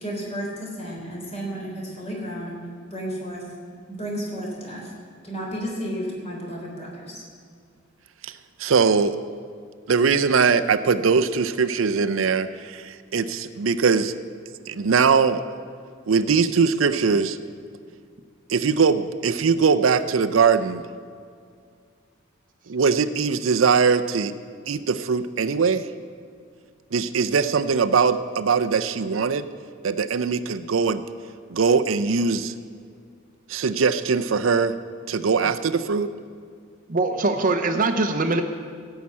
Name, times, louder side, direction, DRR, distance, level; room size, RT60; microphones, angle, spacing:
voice 1, 0.0-2.5 2.9-3.4 3.9-4.8 5.2-7.2, equal, 35° left, -2 dB, 3.5 m, -32 dB
voice 2, 8.2-9.2 9.9-14.1 14.7-15.5 16.1-17.4 18.5-20.8 22.7-24.3 24.7-25.9 26.9-29.4 29.8-31.0 31.5-32.5 33.5-34.8 35.1-36.1, right 5 dB, 85° right, 12 dB, 0.5 m, -21 dB
voice 3, 36.9-38.4, right 2 dB, 45° right, 7 dB, 0.7 m, -22 dB
16.5 x 5.8 x 8.5 m, 2.2 s
head